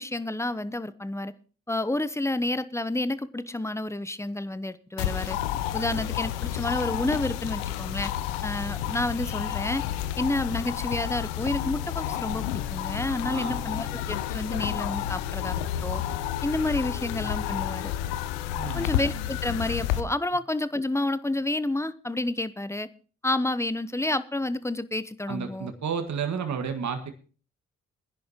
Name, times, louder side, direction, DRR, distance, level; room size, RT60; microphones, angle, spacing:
voice 1, 0.0-1.3 1.7-5.4 5.7-8.1 8.4-9.8 10.2-16.0 16.4-17.9 18.7-22.9 23.2-25.7, left 2 dB, 10° left, 15 dB, 0.9 m, -30 dB
sound 1, 5.0-20.0, left 11 dB, 80° left, 0.8 m, -30 dB
voice 2, 13.3-13.7 18.6-18.9 25.3-27.1, right 6 dB, 50° right, 6 dB, 1.8 m, -31 dB
21.0 x 10.5 x 3.0 m, 0.38 s
hypercardioid pair, 45°, 37 cm